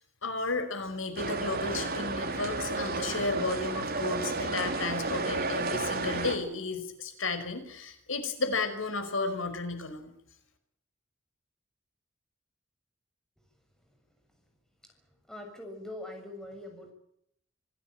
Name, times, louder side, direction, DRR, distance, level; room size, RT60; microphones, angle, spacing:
voice 1, 0.2-10.1, left 3 dB, 85° left, 8 dB, 5.5 m, -33 dB
sound 1, 1.2-6.4, right 3 dB, 50° right, 4.3 m, -32 dB
voice 2, 15.3-16.9, left 1 dB, 5° left, 3 dB, 7.1 m, -42 dB
27.0 x 16.5 x 9.0 m, 0.74 s
head